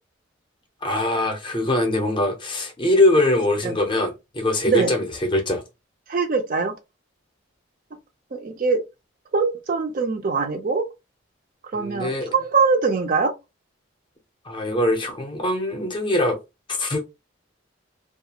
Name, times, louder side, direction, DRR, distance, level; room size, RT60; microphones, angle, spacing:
voice 1, 0.8-5.6 11.7-12.3 14.4-16.4 16.7-17.0, left 1 dB, 25° left, 0.5 m, -22 dB
voice 2, 6.1-6.7 8.3-8.8 9.3-10.9 11.7-13.3, right 4 dB, 45° right, 0.4 m, -22 dB
2.4 x 2.2 x 2.8 m
head